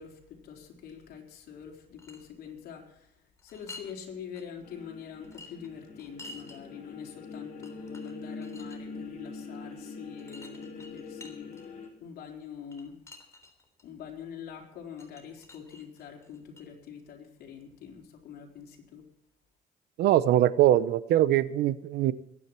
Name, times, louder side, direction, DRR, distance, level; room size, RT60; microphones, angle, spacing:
voice 1, 0.0-3.2 3.4-11.5 12.0-13.0 13.8-19.0, left 7 dB, 70° left, 1 dB, 4.4 m, -45 dB
sound 1, 1.7-2.2 3.4-3.9 4.3-4.4 5.2-6.6 7.3-7.4 7.6-8.8 10.2-11.9 12.7-13.8 15.0-16.6, left 2 dB, 15° left, 3.5 m, -49 dB
sound 2, 4.6-11.9, left 4 dB, 50° left, 4.6 m, -43 dB
voice 2, 20.0-22.1, right 13 dB, 75° right, 16 dB, 0.8 m, -22 dB
22.0 x 10.0 x 4.5 m, 0.77 s
cardioid pair, 110°, 17 cm